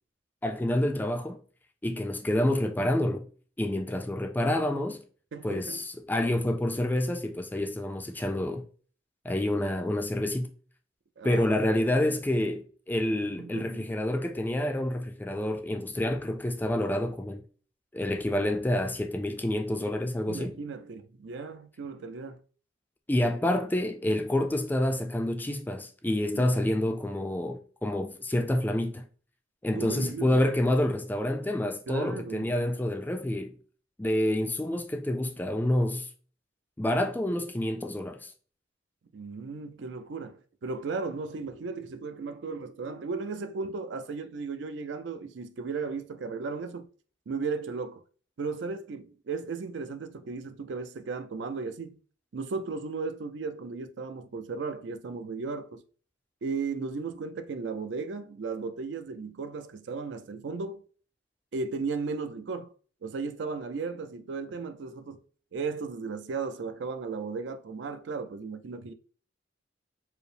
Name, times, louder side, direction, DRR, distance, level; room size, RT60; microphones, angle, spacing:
voice 1, 0.4-1.4 1.8-3.3 3.6-5.0 5.4-8.6 9.2-10.5 11.2-17.4 17.9-20.6 23.1-29.1 29.6-33.6 34.0-36.1 36.8-38.3, left 1 dB, 10° left, 0.3 m, -28 dB
voice 2, 5.3-5.8 11.2-11.7 13.4-13.9 20.3-22.4 26.3-26.5 29.7-30.4 31.9-32.5 39.1-46.9 47.3-48.0 48.4-52.0 52.3-55.8 56.4-60.8 61.5-62.7 63.0-65.2 65.5-68.9, right 4 dB, 75° right, 0.4 m, -35 dB
4.6 x 2.0 x 3.3 m
head